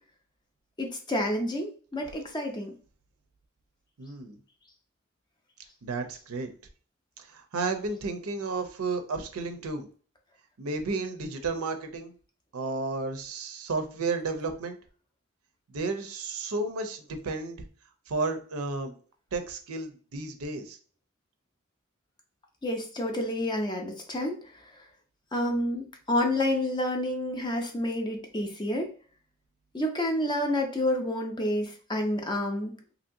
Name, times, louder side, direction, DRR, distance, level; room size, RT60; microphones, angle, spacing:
voice 1, 0.8-2.7 22.6-24.4 25.3-28.9 29.7-32.7, left 1 dB, 20° left, 3 dB, 0.4 m, -29 dB
voice 2, 4.0-4.4 5.8-6.5 7.2-9.9 10.6-12.1 12.5-14.8 15.7-17.6 18.1-18.9 19.3-20.8, right 3 dB, 85° right, 6 dB, 0.6 m, -32 dB
3.0 x 2.7 x 2.6 m, 0.41 s
head